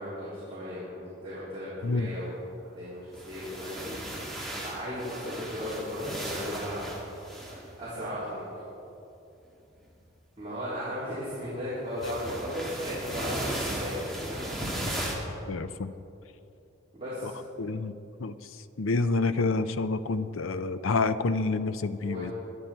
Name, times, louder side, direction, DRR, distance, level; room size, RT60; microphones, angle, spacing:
voice 1, 0.0-2.4 2.7-6.8 7.8-8.5 10.4-14.8 16.9-17.4 22.0-22.3, equal, 25° right, -11 dB, 3.7 m, -36 dB
sound 1, 3.0-8.1 9.8-10.1 12.0-15.2, right 1 dB, ahead, 2.0 m, -36 dB
voice 2, 15.5-15.9 17.2-17.3 17.6-17.9 18.2-18.3 18.8-22.3, left 3 dB, 85° left, 12 dB, 0.6 m, -28 dB
23.5 x 9.0 x 4.5 m, 2.9 s
head